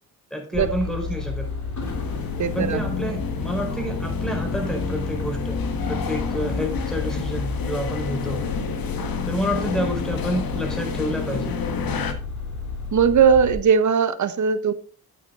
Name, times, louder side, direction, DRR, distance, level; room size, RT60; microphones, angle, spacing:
voice 1, 0.3-1.5 2.5-8.4 9.3-11.6, equal, ahead, 2 dB, 4.5 m, -29 dB
sound 1, 0.5-13.5, left 4 dB, 45° left, 3.0 m, -31 dB
sound 2, 1.8-12.1, left 5 dB, 60° left, 1.5 m, -30 dB
voice 2, 2.4-2.8 12.9-14.7, right 6 dB, 45° right, 12 dB, 1.0 m, -19 dB
8.9 x 8.6 x 3.8 m, 0.39 s
supercardioid pair, 55°, 39 cm